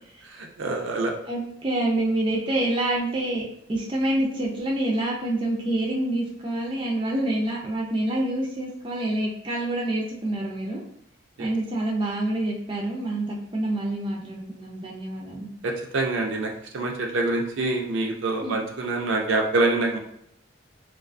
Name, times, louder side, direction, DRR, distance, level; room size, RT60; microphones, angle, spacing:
voice 1, 0.3-1.1 11.4-11.5 15.6-20.0, right 2 dB, 85° right, 1 dB, 0.5 m, -26 dB
voice 2, 1.3-3.4 3.7-10.8 11.4-15.5 18.4-18.5, right 1 dB, 25° right, -2 dB, 0.4 m, -27 dB
2.4 x 2.2 x 2.4 m, 0.72 s
head